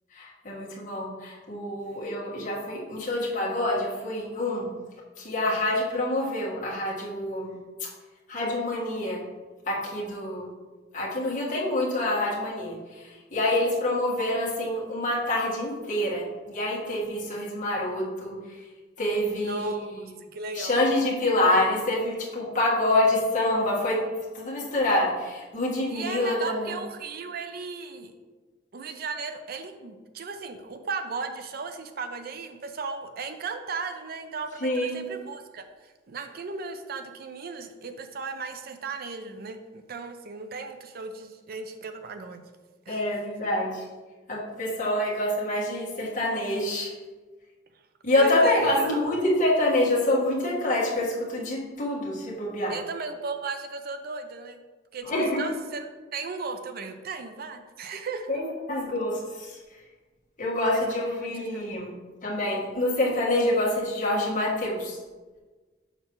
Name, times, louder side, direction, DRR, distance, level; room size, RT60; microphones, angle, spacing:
voice 1, 0.1-4.7 5.2-7.5 7.8-7.9 8.3-9.2 9.7-10.5 10.9-13.0 13.3-18.4 19.0-19.6 20.5-24.0 24.3-26.8 34.6-35.0 42.9-43.8 44.3-46.9 48.0-52.8 55.0-55.4 58.3-59.6 60.4-61.9 62.2-65.0, left 1 dB, 45° left, -4 dB, 1.5 m, -26 dB
voice 2, 19.4-20.9 25.9-28.1 28.7-42.4 42.9-43.0 48.2-49.0 52.7-54.6 54.9-58.3 60.7-61.9, right 4 dB, 55° right, 8 dB, 0.5 m, -36 dB
6.6 x 6.0 x 3.0 m, 1.3 s
head